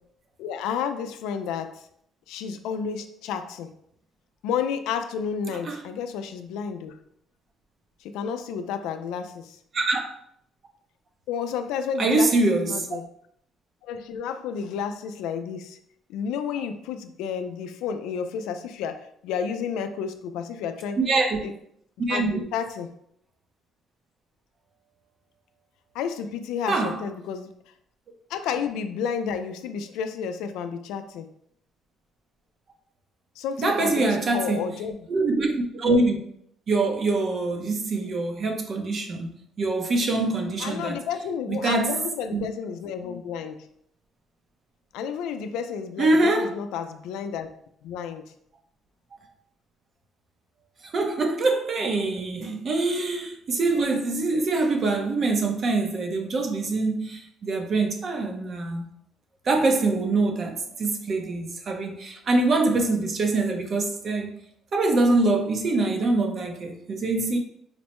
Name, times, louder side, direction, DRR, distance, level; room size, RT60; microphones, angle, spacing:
voice 1, 0.4-1.8 2.3-3.7 4.4-7.0 8.0-9.6 11.3-13.1 13.8-15.8 16.1-21.0 21.4-21.5 22.1-22.9 25.9-27.5 28.3-31.3 33.4-35.0 40.6-43.7 44.9-47.5 47.8-48.2, left 7 dB, 85° left, 0.3 m, -31 dB
voice 2, 9.7-10.1 12.0-12.9 21.0-21.4 22.1-22.4 26.7-27.0 33.6-34.7 35.1-36.2 36.7-39.3 39.6-41.0 41.5-41.9 42.3-42.4 46.0-46.5 50.9-58.9 59.4-64.3 64.7-67.4, right 2 dB, 45° right, 0.7 m, -24 dB
4.3 x 2.1 x 2.9 m
cardioid pair, 100°, 0 cm